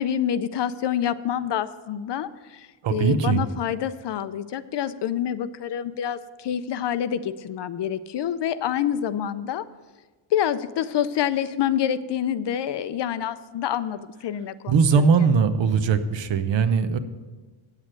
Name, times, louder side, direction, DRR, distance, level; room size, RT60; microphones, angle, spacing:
voice 1, 0.0-9.6 10.3-14.7, left 9 dB, 60° left, 14 dB, 0.5 m, -27 dB
voice 2, 2.8-3.4 14.7-17.0, right 5 dB, 60° right, 9 dB, 0.8 m, -20 dB
9.0 x 8.2 x 6.4 m, 1.3 s
wide cardioid pair, 170°, 50 cm